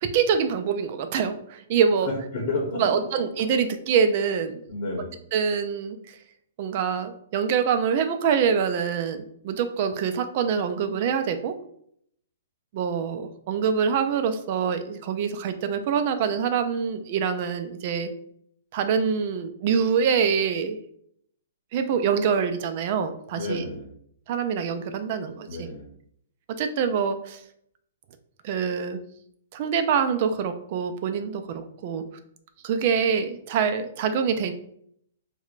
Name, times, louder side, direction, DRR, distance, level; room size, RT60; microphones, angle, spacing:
voice 1, 0.0-2.1 2.8-4.6 5.3-6.2 6.6-11.5 12.7-18.1 18.7-20.8 21.7-23.6 24.3-25.5 26.6-27.4 28.4-29.0 29.5-32.0 32.6-34.5, right 6 dB, 35° right, 8 dB, 0.4 m, -25 dB
voice 2, 2.0-3.2 4.7-5.1 23.3-23.9 25.5-25.9, left 2 dB, 30° left, -4 dB, 1.1 m, -31 dB
4.8 x 2.1 x 2.4 m, 0.68 s
hypercardioid pair, 165°, 0 cm